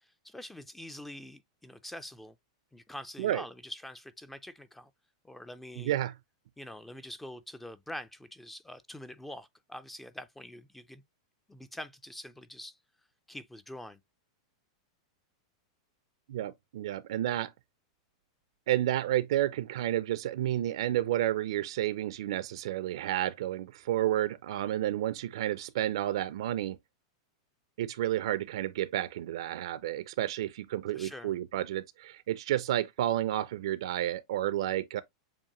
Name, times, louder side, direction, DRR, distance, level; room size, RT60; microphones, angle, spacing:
voice 1, 0.0-2.3 2.7-4.9 5.2-5.9 6.6-11.0 11.5-12.8 13.3-14.0 30.9-31.3, left 1 dB, 5° left, 0.3 m, -45 dB
voice 2, 5.8-6.1 16.3-17.5 18.7-26.8 27.8-35.0, right 13 dB, 70° right, 0.4 m, -31 dB
7.2 x 2.5 x 2.9 m
supercardioid pair, 145°, 3 cm